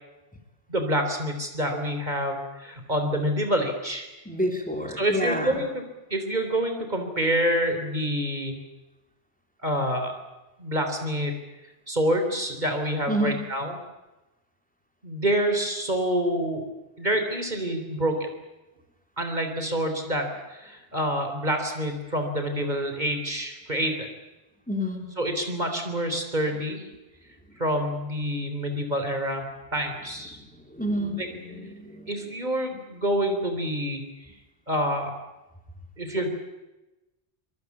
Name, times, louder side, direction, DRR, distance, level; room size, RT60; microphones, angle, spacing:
voice 1, 0.7-4.1 5.0-5.8 6.1-8.6 9.6-10.1 10.6-11.4 11.9-13.7 15.0-16.7 17.0-18.3 19.2-24.1 25.2-26.8 27.6-30.4 32.1-34.0 34.7-35.2 36.0-36.3, equal, 45° right, 5 dB, 3.8 m, -27 dB
voice 2, 4.3-5.6 13.1-13.5 24.7-25.1 30.3-32.1, equal, 10° left, 3 dB, 3.6 m, -29 dB
24.5 x 22.0 x 8.5 m, 1.0 s
omnidirectional pair, 1.1 m